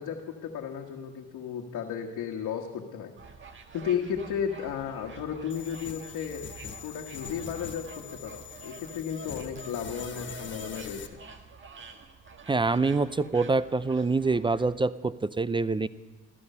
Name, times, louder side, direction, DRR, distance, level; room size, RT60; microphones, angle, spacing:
voice 1, 0.0-3.1 3.7-6.4 6.8-11.0, left 8 dB, 80° left, 0 dB, 1.4 m, -34 dB
sound 1, 3.2-14.7, right 4 dB, 40° right, 1.6 m, -48 dB
sound 2, 5.5-11.1, left 7 dB, 40° left, 1.1 m, -43 dB
voice 2, 12.5-15.9, right 3 dB, 15° right, 16 dB, 0.4 m, -26 dB
15.0 x 14.0 x 5.5 m, 1.4 s
cardioid pair, 90°, 30 cm